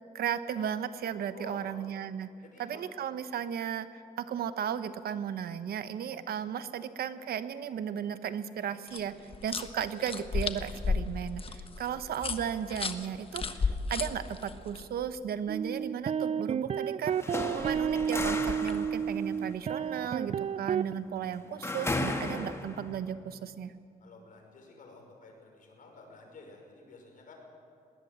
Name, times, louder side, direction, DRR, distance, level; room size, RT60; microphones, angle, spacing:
voice 1, 0.1-2.3 2.6-9.1 9.4-23.7, right 8 dB, 75° right, 12 dB, 1.0 m, -35 dB
voice 2, 1.3-1.9 2.4-2.8 24.0-27.3, left 3 dB, 60° left, 1 dB, 5.9 m, -51 dB
sound 1, 8.9-14.8 17.4-18.9, left 4 dB, 35° left, 1.2 m, -35 dB
sound 2, 15.5-20.9, right 7 dB, 40° right, 0.4 m, -31 dB
sound 3, 17.0-23.0, left 2 dB, 15° left, 1.9 m, -36 dB
20.0 x 19.0 x 7.5 m, 2.3 s
cardioid pair, 100°, 16 cm